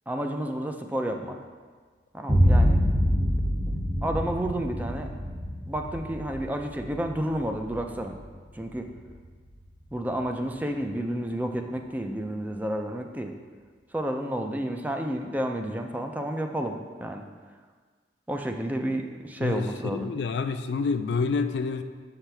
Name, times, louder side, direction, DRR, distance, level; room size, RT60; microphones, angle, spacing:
voice 1, 0.1-1.4 2.1-2.8 3.7-3.8 4.0-5.1 5.7-8.2 8.5-8.9 9.9-13.3 13.9-17.2 18.3-20.1, right 1 dB, 10° right, 4 dB, 0.4 m, -31 dB
Boom, 2.3-10.1, equal, 40° right, 1.9 m, -26 dB
voice 2, 19.4-21.8, left 4 dB, 70° left, 9 dB, 0.4 m, -28 dB
7.1 x 5.8 x 3.4 m, 1.5 s
head